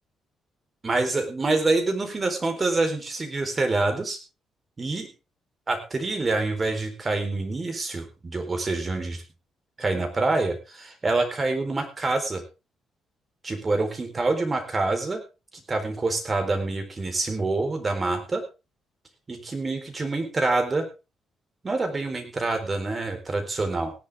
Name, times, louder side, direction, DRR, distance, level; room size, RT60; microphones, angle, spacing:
voice 1, 0.8-4.2 4.8-5.1 5.7-9.2 9.8-12.4 13.4-15.2 15.5-18.4 19.3-20.8 21.6-23.9, right 3 dB, 30° right, 7 dB, 4.1 m, -26 dB
18.0 x 11.0 x 3.6 m, 0.29 s
cardioid pair, 90°, 0 cm